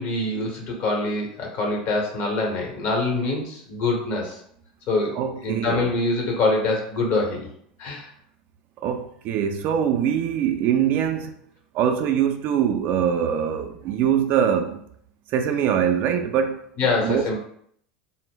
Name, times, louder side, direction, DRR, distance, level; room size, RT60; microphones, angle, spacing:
voice 1, 0.0-4.4 4.9-7.5 7.8-8.1 16.8-17.4, left 2 dB, 50° left, 0.9 m, -25 dB
voice 2, 5.1-5.9 8.8-11.4 11.7-14.8 15.3-16.7 17.0-17.4, right 8 dB, 50° right, 0.3 m, -23 dB
2.1 x 2.0 x 3.6 m
hypercardioid pair, 85°, 4 cm